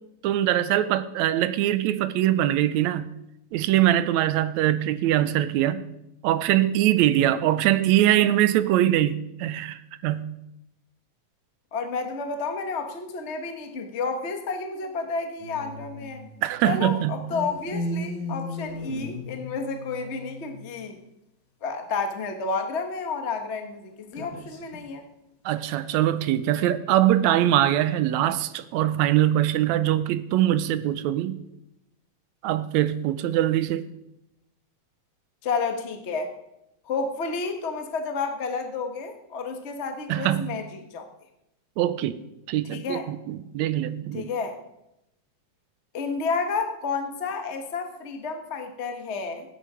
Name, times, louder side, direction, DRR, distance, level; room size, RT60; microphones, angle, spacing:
voice 1, 0.2-3.1 3.5-5.9 6.2-10.3 16.4-17.3 25.5-31.4 32.4-33.8 40.1-40.5 41.8-42.2 42.5-44.3, right 12 dB, 80° right, 1.9 m, -23 dB
voice 2, 11.7-16.2 16.6-21.0 21.6-25.0 35.4-36.3 36.9-41.0 42.7-43.0 44.1-44.5 45.9-49.4, left 4 dB, 60° left, 0.7 m, -31 dB
sound 1, 15.4-16.8 17.3-20.7 24.1-24.8, left 1 dB, 80° left, 3.3 m, -35 dB
15.5 x 10.5 x 4.9 m
omnidirectional pair, 3.4 m